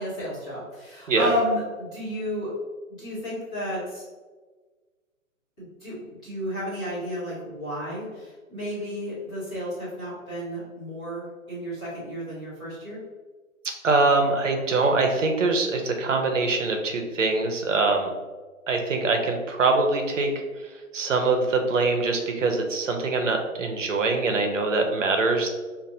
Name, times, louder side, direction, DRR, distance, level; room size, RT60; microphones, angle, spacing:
voice 1, 0.0-2.5 3.0-4.0 5.6-13.0, equal, 5° left, -13 dB, 0.5 m, -32 dB
voice 2, 13.8-18.1 18.7-20.3 20.6-20.7 20.9-25.5, right 3 dB, 65° right, 4 dB, 0.8 m, -23 dB
5.0 x 2.6 x 2.6 m, 1.3 s
figure-of-eight pair, 135°, 41 cm